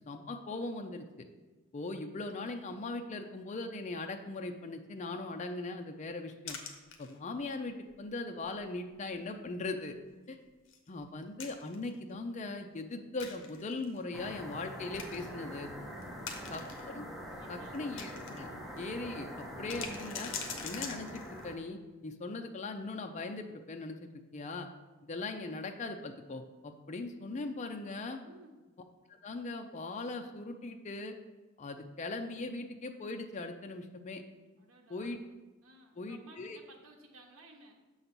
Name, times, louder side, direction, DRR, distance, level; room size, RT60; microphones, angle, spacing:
voice 1, 0.1-1.0 1.7-6.6 7.0-9.9 10.3-10.4 10.9-15.7 16.5-16.6 16.9-17.0 17.5-18.5 18.8-19.3 19.6-20.3 20.6-24.7 25.1-28.2 29.2-31.1 31.6-34.2 34.9-35.2 36.0-36.6, left 3 dB, 35° left, 5 dB, 0.4 m, -39 dB
sound 1, 6.5-7.4 7.9-8.0 8.4-8.6 9.0-9.1 10.7-11.9 13.2-14.0 14.5-14.6 14.9-15.3 16.0-16.8 17.3-18.4 18.8-18.9 19.4-21.5, left 6 dB, 65° left, 0.9 m, -43 dB
sound 2, 14.1-21.6, equal, ahead, 0.8 m, -44 dB
voice 2, 16.3-16.7 17.3-18.1 28.2-28.7 34.6-35.2 35.6-37.7, right 1 dB, 75° right, 0 dB, 1.0 m, -57 dB
6.7 x 4.0 x 5.9 m, 1.2 s
head